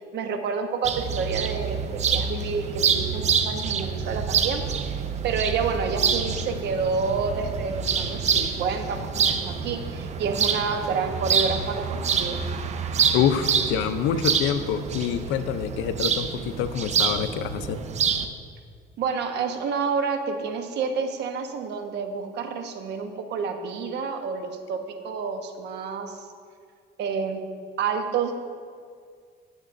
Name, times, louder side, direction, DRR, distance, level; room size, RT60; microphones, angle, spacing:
voice 1, 0.1-12.4 19.0-26.3 27.0-27.4 27.8-28.3, right 5 dB, 60° right, 6 dB, 1.0 m, -29 dB
sound 1, 0.8-18.3, right 6 dB, 35° right, 0.6 m, -27 dB
voice 2, 13.1-17.8, left 8 dB, 80° left, 10 dB, 0.6 m, -26 dB
18.0 x 7.1 x 2.6 m, 2.1 s
cardioid pair, 135°, 20 cm